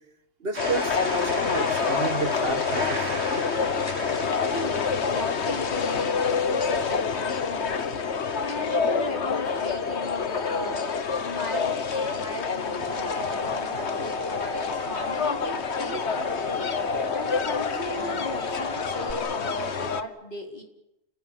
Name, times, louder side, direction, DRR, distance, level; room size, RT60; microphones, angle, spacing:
voice 1, 0.4-3.1, right 4 dB, 65° right, 10 dB, 1.8 m, -31 dB
sound 1, 0.5-6.3, right 2 dB, 80° right, 3.5 m, -37 dB
sound 2, 0.6-20.0, left 5 dB, 90° left, 1.6 m, -27 dB
voice 2, 4.5-20.6, left 1 dB, 50° left, 3 dB, 4.3 m, -37 dB
sound 3, 12.4-19.1, left 1 dB, 5° left, 1.5 m, -36 dB
30.0 x 16.0 x 9.4 m, 0.90 s
omnidirectional pair, 1.1 m